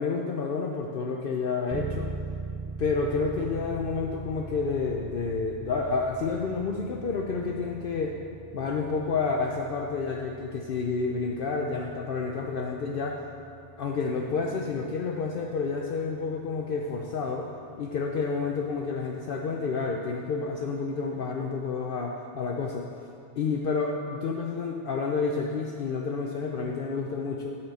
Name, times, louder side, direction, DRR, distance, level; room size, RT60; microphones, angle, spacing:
voice 1, 0.0-2.1 2.8-8.2 8.5-13.2 13.8-17.5 17.8-22.8 23.4-27.6, left 4 dB, 60° left, 0 dB, 0.8 m, -29 dB
sound 1, 1.7-18.4, right 3 dB, 35° right, 0.4 m, -42 dB
11.5 x 4.5 x 6.4 m, 2.6 s
omnidirectional pair, 1.1 m